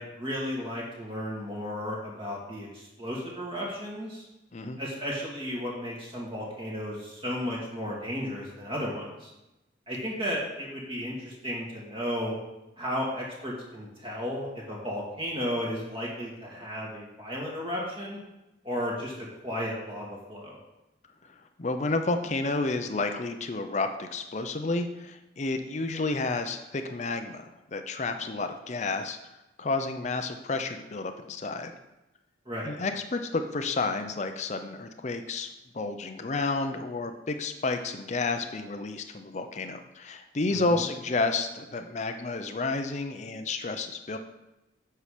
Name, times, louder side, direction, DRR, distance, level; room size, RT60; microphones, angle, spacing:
voice 1, 0.0-4.2 4.8-9.3 9.9-12.4 12.8-18.2 18.6-20.6 32.5-32.7 40.5-40.8, equal, 30° right, -4 dB, 2.2 m, -34 dB
voice 2, 21.6-29.2 29.6-31.7 32.7-35.5 35.7-44.2, left 3 dB, 40° left, 7 dB, 0.5 m, -31 dB
8.2 x 5.7 x 5.0 m, 0.96 s
head